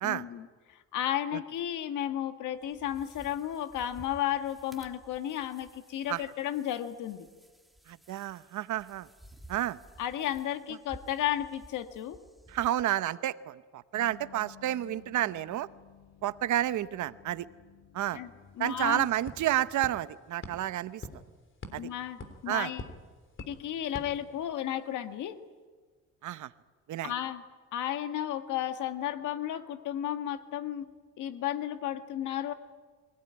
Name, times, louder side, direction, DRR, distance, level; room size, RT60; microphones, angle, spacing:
voice 1, 0.0-7.3 10.0-12.2 18.1-18.3 18.6-19.1 21.8-22.8 23.4-25.4 27.0-27.4 27.7-30.9 31.2-32.5, left 11 dB, 85° left, 9 dB, 1.6 m, -33 dB
sound 1, 2.6-12.8, right 1 dB, ahead, 2.5 m, -55 dB
voice 2, 7.9-9.1 9.5-9.8 12.5-15.7 16.2-17.5 17.9-18.2 18.6-21.0 21.7-21.9 22.5-22.7 26.2-26.5 26.9-27.1, right 13 dB, 75° right, 15 dB, 0.9 m, -30 dB
sound 2, 13.9-19.8, left 9 dB, 60° left, 1.4 m, -56 dB
sound 3, 18.2-18.3 18.5-24.9, left 2 dB, 40° left, 3.5 m, -47 dB
24.0 x 18.0 x 9.8 m, 1.5 s
cardioid pair, 90°, 30 cm